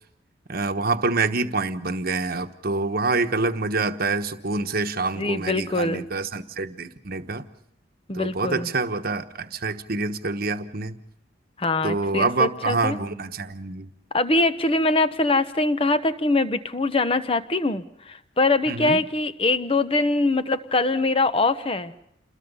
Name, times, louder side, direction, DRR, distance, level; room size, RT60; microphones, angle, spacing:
voice 1, 0.5-7.5 8.1-11.0 11.8-13.9 18.7-19.0, right 3 dB, 50° right, 8 dB, 1.2 m, -26 dB
voice 2, 5.2-6.0 8.1-8.7 11.6-13.0 14.1-21.9, left 2 dB, 30° left, 11 dB, 1.0 m, -23 dB
28.5 x 21.5 x 5.5 m, 0.76 s
head